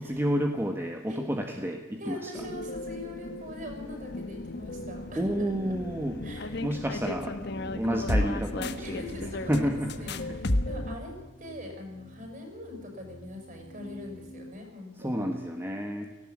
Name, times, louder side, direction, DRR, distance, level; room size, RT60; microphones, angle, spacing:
voice 1, 0.0-2.3 5.2-6.2 6.6-7.4 7.6-10.4 15.0-16.1, equal, 10° right, 3 dB, 1.5 m, -30 dB
voice 2, 2.0-5.7 6.2-6.7 8.8-15.4, left 1 dB, 40° right, 3 dB, 7.2 m, -43 dB
sound 1, 2.3-11.0, left 1 dB, 55° left, 1.3 m, -34 dB
sound 2, 5.1-14.5, equal, 90° left, 2.0 m, -49 dB
18.0 x 17.0 x 8.8 m, 1.2 s
head